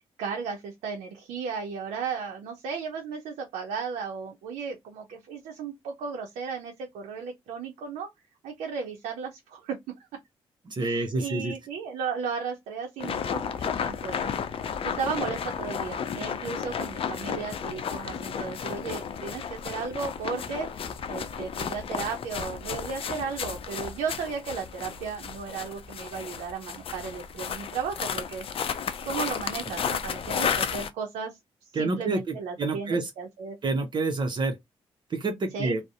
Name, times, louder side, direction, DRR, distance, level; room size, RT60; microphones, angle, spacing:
voice 1, 0.2-8.1 8.4-9.8 10.8-14.3 14.8-20.7 21.1-28.5 29.0-33.6 35.5-35.8, right 5 dB, 90° right, 0.5 m, -35 dB
voice 2, 10.7-11.5 31.7-33.1 33.6-34.6 35.1-35.8, right 3 dB, 45° right, 0.6 m, -28 dB
sound 1, 13.0-30.9, left 7 dB, 60° left, 0.4 m, -33 dB
2.6 x 2.0 x 2.4 m
supercardioid pair, 60°, 11 cm